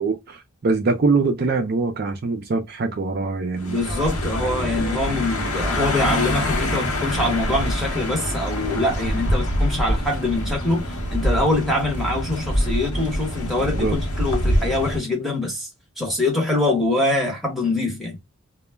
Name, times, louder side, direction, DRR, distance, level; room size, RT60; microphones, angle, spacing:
voice 1, 0.0-3.8 5.1-5.2 13.6-14.0, right 3 dB, 45° right, 0.4 m, -23 dB
sound 1, 3.6-15.0, equal, 85° left, 0.8 m, -25 dB
voice 2, 3.7-15.7 16.0-18.2, left 2 dB, ahead, 0.8 m, -24 dB
2.2 x 2.0 x 3.2 m
head